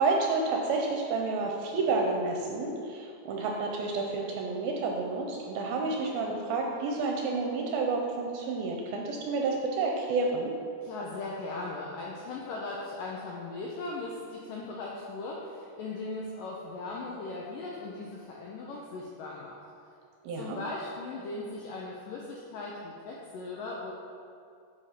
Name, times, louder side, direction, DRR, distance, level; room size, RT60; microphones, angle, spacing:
voice 1, 0.0-10.5 20.2-20.6, right 3 dB, 80° right, 0 dB, 2.2 m, -30 dB
voice 2, 10.8-19.6 20.3-23.9, left 3 dB, 90° left, -3 dB, 1.9 m, -38 dB
8.2 x 5.4 x 5.8 m, 2.4 s
omnidirectional pair, 4.8 m